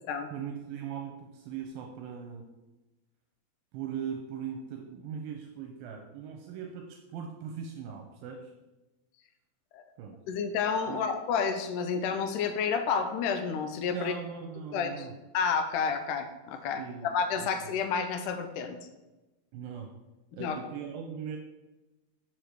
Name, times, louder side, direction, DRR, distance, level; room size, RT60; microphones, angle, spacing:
voice 1, 0.3-2.5 3.7-8.5 10.0-10.2 10.9-11.0 13.9-15.1 16.8-17.1 17.4-17.8 19.5-19.9 20.3-21.4, right 7 dB, 80° right, 3 dB, 2.3 m, -40 dB
voice 2, 10.3-14.1 14.7-15.1 15.3-18.8 20.4-20.6, left 6 dB, 85° left, 7 dB, 1.9 m, -30 dB
7.1 x 5.1 x 4.6 m, 1.1 s
omnidirectional pair, 4.3 m